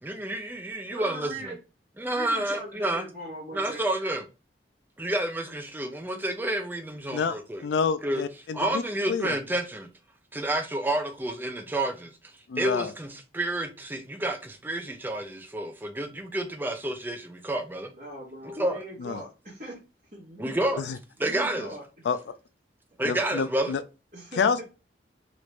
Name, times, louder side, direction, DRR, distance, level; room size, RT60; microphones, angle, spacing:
voice 1, 0.0-1.5 2.0-3.0 3.5-4.2 5.0-7.6 8.0-8.2 8.5-9.9 10.3-12.1 12.6-17.9 18.6-18.8 20.4-20.8 21.2-21.7 23.0-23.8, right 1 dB, 10° right, 0.4 m, -29 dB
voice 2, 0.9-1.6 2.1-3.8 17.9-19.8 20.1-20.5 21.2-21.8 23.0-23.2 24.1-24.6, right 1 dB, 45° right, 1.1 m, -40 dB
voice 3, 7.6-8.8 9.1-9.3 12.5-12.9 19.0-19.2 20.8-21.0 22.1-22.2 23.0-23.8 24.4-24.6, left 5 dB, 75° left, 0.3 m, -28 dB
3.1 x 2.5 x 3.1 m
head